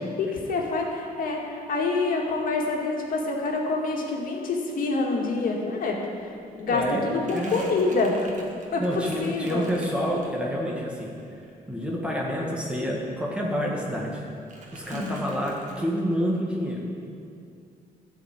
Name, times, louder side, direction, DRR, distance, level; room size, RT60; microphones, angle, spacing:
voice 1, 0.2-8.3 8.7-9.7 14.9-15.2, left 3 dB, 60° left, 0 dB, 2.1 m, -27 dB
Crumpling crinkling, 5.8-5.9 6.2-10.6 11.0-13.2 13.4-14.2 14.5-15.8, right 2 dB, 50° right, 2.0 m, -46 dB
voice 2, 6.7-7.6 8.8-11.1 11.7-14.2 14.7-16.8, equal, 5° right, -3 dB, 1.9 m, -28 dB
12.5 x 5.2 x 8.8 m, 2.5 s
cardioid pair, 95°, 16 cm